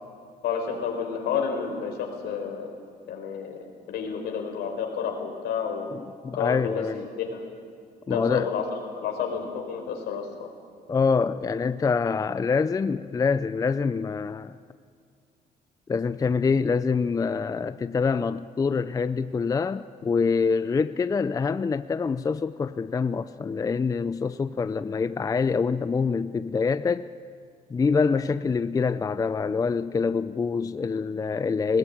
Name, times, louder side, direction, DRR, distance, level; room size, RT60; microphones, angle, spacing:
voice 1, 0.4-2.7 3.1-3.6 3.9-5.9 6.3-7.5 8.1-8.6 9.0-10.5, left 6 dB, 75° left, 4.6 m, -30 dB
voice 2, 5.9-7.0 8.1-8.5 10.9-14.5 15.9-27.1 27.7-31.8, left 5 dB, 20° left, 0.4 m, -25 dB
20.5 x 17.5 x 8.8 m
cardioid pair, 110°, 17 cm